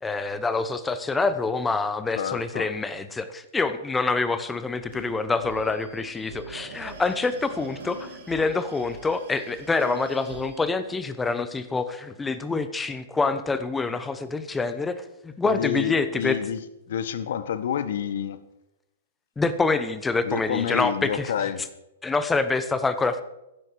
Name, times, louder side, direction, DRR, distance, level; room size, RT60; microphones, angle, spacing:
voice 1, 0.0-16.4 19.4-21.3 22.0-23.2, left 3 dB, 10° left, 1.1 m, -26 dB
voice 2, 2.1-2.7 15.4-16.6 16.9-18.4 20.3-21.6, left 9 dB, 65° left, 1.1 m, -28 dB
sound 1, 4.6-10.6, right 4 dB, 70° right, 3.5 m, -43 dB
14.5 x 10.5 x 4.8 m
hypercardioid pair, 115°, 0 cm